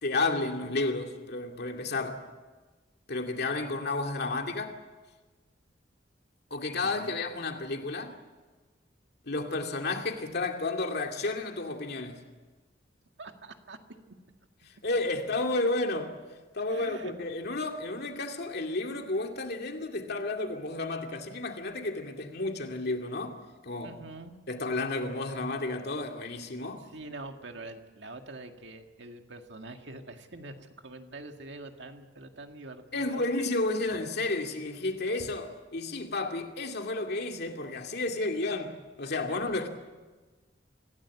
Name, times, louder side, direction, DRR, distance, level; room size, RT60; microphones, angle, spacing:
voice 1, 0.0-2.2 3.1-4.8 6.5-8.2 9.3-12.2 14.8-16.2 16.5-23.4 23.6-23.9 24.5-26.9 32.9-39.7, left 2 dB, 60° left, 2.4 m, -32 dB
voice 2, 6.8-7.2 13.2-13.8 14.6-14.7 16.7-17.1 23.8-24.3 26.8-33.3 35.2-35.3 39.3-39.4, right 2 dB, 70° right, 2.0 m, -45 dB
26.0 x 16.0 x 8.5 m
head